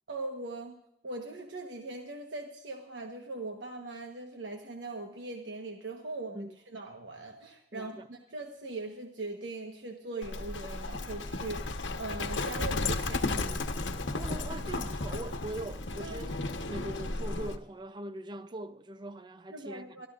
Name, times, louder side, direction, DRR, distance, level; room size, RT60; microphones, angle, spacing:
voice 1, 0.1-0.8 1.0-13.7 16.0-16.2 19.5-20.1, right 2 dB, 75° right, 1.2 m, -40 dB
voice 2, 7.7-8.1 11.3-11.4 14.1-16.4 16.7-20.0, right 1 dB, 25° right, 0.5 m, -41 dB
Livestock farm animals working animals, 10.2-17.6, left 2 dB, 75° left, 1.1 m, -34 dB
25.5 x 13.0 x 2.5 m
head